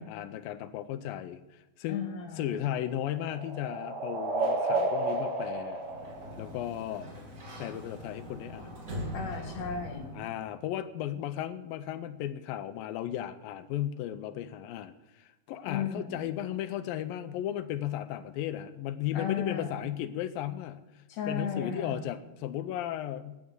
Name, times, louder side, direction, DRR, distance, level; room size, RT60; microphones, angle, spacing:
voice 1, 0.0-2.1 2.4-5.8 6.4-7.1 7.6-8.8 10.1-20.8 21.3-23.4, left 11 dB, 80° left, 11 dB, 2.3 m, -35 dB
voice 2, 1.9-2.5 9.1-10.2 15.7-16.3 19.1-19.8 21.1-22.0, left 6 dB, 60° left, 2 dB, 3.3 m, -35 dB
sound 1, 2.2-7.0, right 2 dB, 60° right, 5.7 m, -32 dB
Sliding door, 5.7-10.5, equal, 25° right, 1.9 m, -42 dB
12.5 x 8.6 x 8.0 m, 1.1 s
omnidirectional pair, 4.4 m